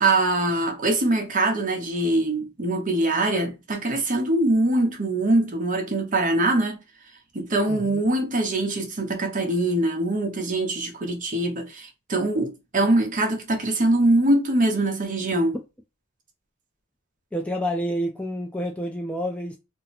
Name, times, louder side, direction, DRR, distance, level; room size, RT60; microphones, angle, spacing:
voice 1, 0.0-6.8 7.3-15.6, right 2 dB, 40° right, 0.8 m, -23 dB
voice 2, 7.7-8.0 17.3-19.6, equal, 5° left, 0.3 m, -29 dB
2.8 x 2.0 x 4.0 m
head